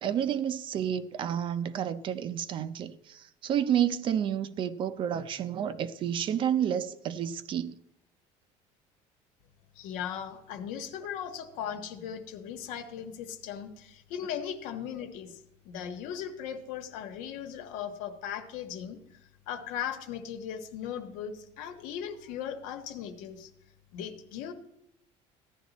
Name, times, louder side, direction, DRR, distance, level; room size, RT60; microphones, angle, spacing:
voice 1, 0.0-7.8, right 9 dB, 40° right, 0.6 m, -30 dB
voice 2, 9.7-23.5 23.9-24.5, left 8 dB, 85° left, 1.3 m, -38 dB
15.0 x 10.5 x 4.1 m
cardioid pair, 165°, 13 cm